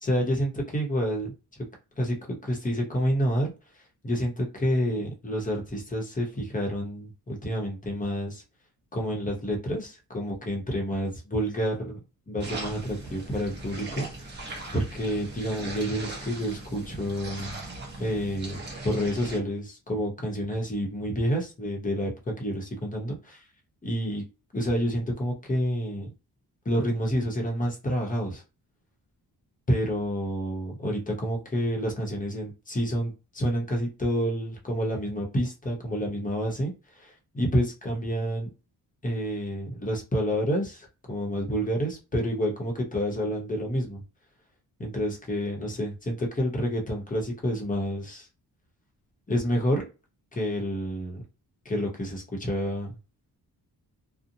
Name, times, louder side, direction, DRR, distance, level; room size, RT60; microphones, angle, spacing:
voice 1, 0.0-1.3 2.0-2.2 2.4-3.5 4.0-8.4 8.9-12.0 12.3-14.5 14.7-17.6 18.0-22.1 22.4-23.4 23.8-24.2 24.5-26.1 26.6-28.4 29.7-38.5 39.0-44.0 44.8-48.3 49.3-49.8 50.3-51.2 51.6-52.9, equal, 20° left, 0 dB, 0.8 m, -29 dB
sound 1, 12.4-19.4, right 2 dB, 30° right, 0.8 m, -39 dB
2.6 x 2.0 x 2.7 m, 0.30 s
wide cardioid pair, 165°, 38 cm